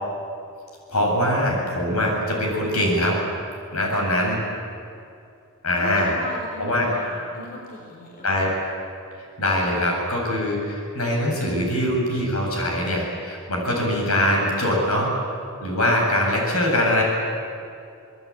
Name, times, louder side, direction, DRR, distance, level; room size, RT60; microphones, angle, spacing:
voice 1, 0.9-3.2 3.7-4.4 5.6-6.1 6.6-6.9 8.2-8.7 9.2-15.1 15.6-17.0, left 1 dB, 75° left, 0 dB, 7.6 m, -22 dB
voice 2, 5.7-8.3, left 1 dB, 40° left, -1 dB, 4.0 m, -36 dB
27.0 x 20.0 x 8.8 m, 2.5 s
head